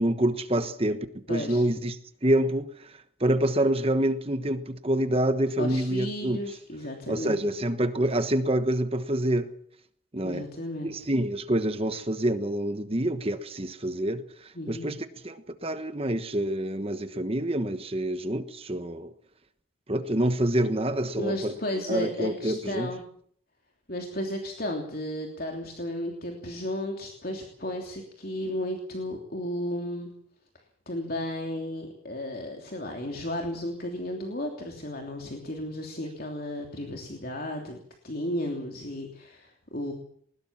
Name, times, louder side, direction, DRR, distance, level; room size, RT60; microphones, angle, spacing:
voice 1, 0.0-2.0 2.2-2.9 3.2-6.4 7.1-9.5 10.1-10.5 10.8-15.0 15.2-19.1 19.9-21.5 21.9-22.9, right 1 dB, 30° right, 1.2 m, -27 dB
voice 2, 1.3-1.6 5.6-7.4 10.2-10.9 14.5-14.9 21.2-23.0 23.9-30.1 30.9-37.8 38.0-39.9, left 1 dB, 45° left, 3.1 m, -34 dB
21.0 x 20.0 x 7.4 m
head